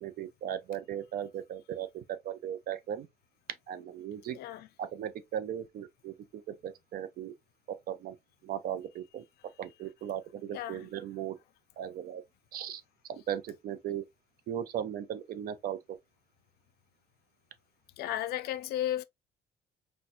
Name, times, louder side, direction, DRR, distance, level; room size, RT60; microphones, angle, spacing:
voice 1, 0.0-3.1 3.7-4.4 4.8-7.3 7.7-8.2 8.4-9.2 9.6-11.4 11.8-12.2 12.5-12.8 13.1-14.0 14.5-16.0, right 10 dB, 60° right, 0.5 m, -37 dB
voice 2, 4.3-4.7 10.5-10.9 18.0-19.0, left 12 dB, 70° left, 0.4 m, -34 dB
4.2 x 2.3 x 2.5 m
cardioid pair, 110°, 17 cm